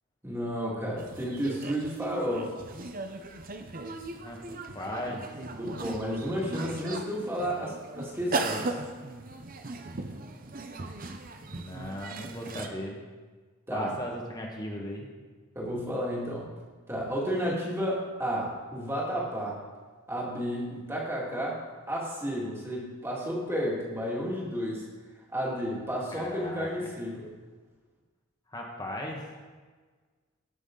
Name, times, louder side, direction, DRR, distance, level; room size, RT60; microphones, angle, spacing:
voice 1, 0.2-2.7 5.6-8.7 13.7-13.9 15.5-16.5 16.9-19.6 20.1-21.6 21.9-24.8 25.3-27.3, equal, 10° right, -4 dB, 2.3 m, -32 dB
sound 1, 1.0-12.7, right 3 dB, 40° right, 0.7 m, -38 dB
voice 2, 4.7-5.3 11.5-13.0 13.7-15.1 26.1-26.9 28.5-29.3, left 1 dB, 20° left, -1 dB, 1.6 m, -37 dB
18.5 x 6.3 x 3.9 m, 1.4 s
head